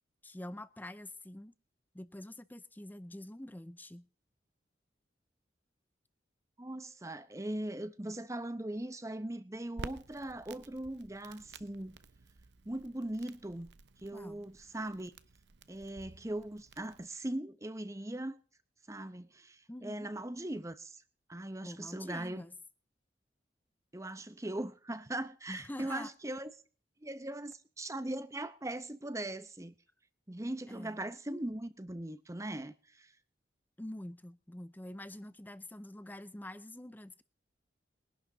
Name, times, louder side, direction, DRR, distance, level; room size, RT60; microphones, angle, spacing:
voice 1, 0.2-1.5 1.9-4.1 14.1-14.5 19.7-20.1 21.6-22.6 25.5-26.1 30.7-31.0 33.8-37.2, left 1 dB, 10° left, 0.6 m, -46 dB
voice 2, 6.6-12.0 12.6-13.7 14.0-15.1 15.7-18.4 18.9-21.0 21.3-22.4 23.9-26.5 27.0-29.7 30.3-33.1, right 1 dB, 15° right, 0.9 m, -40 dB
Crackle, 9.8-17.1, right 3 dB, 65° right, 0.9 m, -52 dB
22.0 x 11.5 x 4.1 m
head